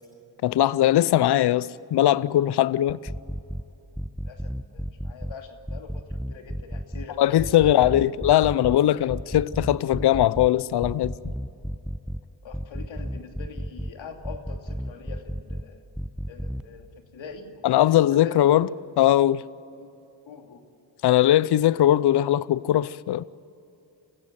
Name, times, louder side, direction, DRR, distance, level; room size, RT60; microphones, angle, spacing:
voice 1, 0.4-3.0 7.2-11.1 17.6-18.7 19.0-19.4 21.0-23.2, left 13 dB, 55° left, 0.7 m, -20 dB
sound 1, 2.9-3.6 3.9-5.3 5.7-7.1 7.4-8.8 9.1-10.5 10.8-12.2 12.5-13.9 14.2-15.6 15.9-16.6, equal, ahead, 0.8 m, -32 dB
voice 2, 4.2-8.1 8.6-9.1 12.4-15.8 16.3-18.8 19.8-19.9 20.3-20.7, left 5 dB, 75° left, 2.8 m, -43 dB
27.0 x 15.5 x 9.3 m
supercardioid pair, 50°, 46 cm